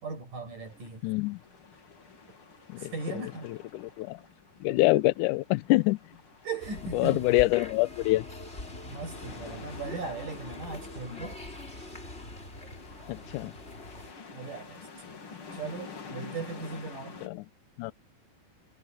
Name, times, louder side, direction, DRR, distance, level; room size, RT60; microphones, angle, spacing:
voice 1, 0.0-1.1 2.8-3.5 6.4-7.3 8.8-11.4 14.3-15.2 15.5-17.2, right 4 dB, 60° right, 7.6 m, -38 dB
sound 1, 0.6-17.3, left 5 dB, 40° left, 3.1 m, -49 dB
voice 2, 1.0-1.4 2.7-2.9 3.7-4.2 4.6-6.0 6.9-8.3 13.1-13.5 17.2-17.4 17.8-17.9, left 19 dB, 85° left, 1.9 m, -25 dB
sound 2, 6.6-14.1, left 2 dB, 15° left, 3.9 m, -43 dB
omnidirectional pair, 4.3 m